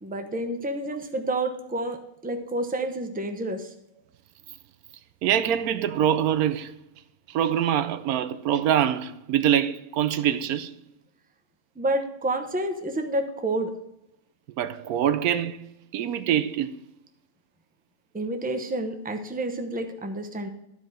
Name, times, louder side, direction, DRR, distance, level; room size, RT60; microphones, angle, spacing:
voice 1, 0.0-3.7 11.8-13.7 18.1-20.5, right 1 dB, 10° right, 0.7 m, -29 dB
voice 2, 5.2-6.7 7.3-10.7 14.6-16.8, right 10 dB, 85° right, 1.1 m, -24 dB
12.5 x 4.8 x 6.2 m
omnidirectional pair, 1.6 m